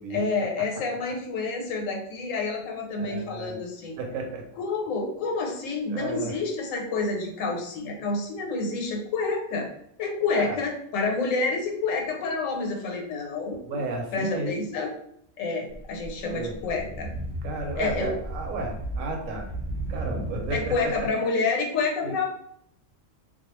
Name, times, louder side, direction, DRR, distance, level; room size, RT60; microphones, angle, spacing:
voice 1, 0.1-4.0 4.6-9.7 10.0-13.8 14.1-14.9 15.4-17.1 17.8-18.1 20.5-22.2, left 3 dB, 80° left, 1 dB, 1.0 m, -28 dB
voice 2, 2.9-3.6 4.0-4.5 5.9-6.3 10.3-10.6 13.6-14.6 16.3-16.5 17.4-19.5 19.9-20.9 22.0-22.2, right 2 dB, 85° right, 1 dB, 1.0 m, -33 dB
sound 1, 15.7-21.1, right 1 dB, 40° right, 0.8 m, -35 dB
2.3 x 2.2 x 2.9 m, 0.71 s
omnidirectional pair, 1.3 m